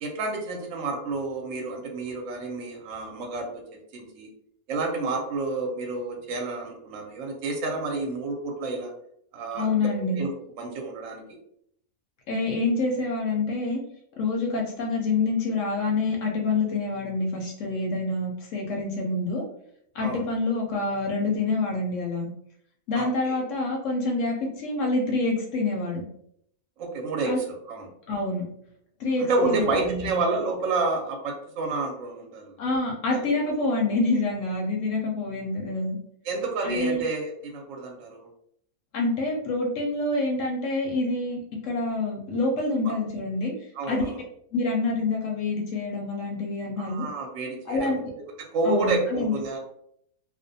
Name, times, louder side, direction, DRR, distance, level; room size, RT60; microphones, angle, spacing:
voice 1, 0.0-3.6 3.9-4.3 4.7-8.9 9.3-9.7 10.2-10.3 10.6-11.2 20.0-20.2 22.9-23.4 26.8-27.9 29.2-32.5 36.2-38.3 43.8-44.2 46.8-48.0 48.4-49.6, right 3 dB, 65° right, 1 dB, 0.9 m, -29 dB
voice 2, 9.5-10.2 12.3-13.8 14.2-19.4 19.9-22.3 22.9-26.0 27.3-27.4 28.1-28.4 29.0-30.2 32.6-36.0 36.6-37.0 38.9-43.5 43.9-44.0 44.5-47.0 47.7-48.1 48.6-49.3, left 3 dB, 70° left, -1 dB, 0.8 m, -27 dB
2.5 x 2.1 x 2.6 m, 0.70 s
omnidirectional pair, 1.5 m